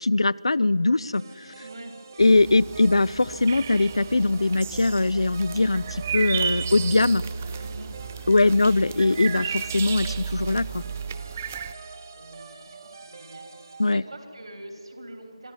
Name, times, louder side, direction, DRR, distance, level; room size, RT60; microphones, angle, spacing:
voice 1, 0.0-1.5 2.2-7.2 8.3-10.8 13.8-14.0, left 2 dB, 60° left, 21 dB, 0.4 m, -21 dB
sound 1, 1.1-13.9, right 4 dB, 35° right, 1.8 m, -45 dB
voice 2, 1.6-2.0 7.6-8.5 12.1-15.5, right 1 dB, 60° right, 4 dB, 3.4 m, -44 dB
sound 2, 2.2-11.7, right 6 dB, 20° right, 0.4 m, -33 dB
23.0 x 12.5 x 9.3 m, 2.7 s
figure-of-eight pair, 160°, 3 cm